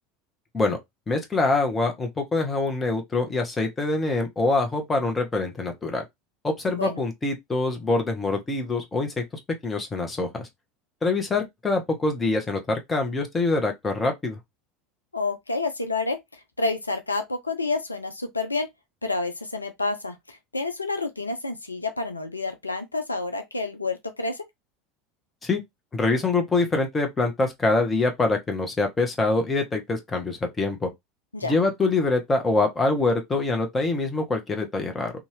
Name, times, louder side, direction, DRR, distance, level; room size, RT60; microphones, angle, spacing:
voice 1, 1.1-6.0 6.4-9.2 9.6-10.5 11.0-14.4 25.4-25.6 25.9-30.9 31.4-35.1, left 3 dB, 20° left, 0.8 m, -25 dB
voice 2, 6.7-7.0 15.1-16.2 16.6-18.7 19.0-24.4 31.3-31.5, left 3 dB, 90° left, 0.4 m, -29 dB
2.6 x 2.4 x 3.2 m
figure-of-eight pair, 75°, 0 cm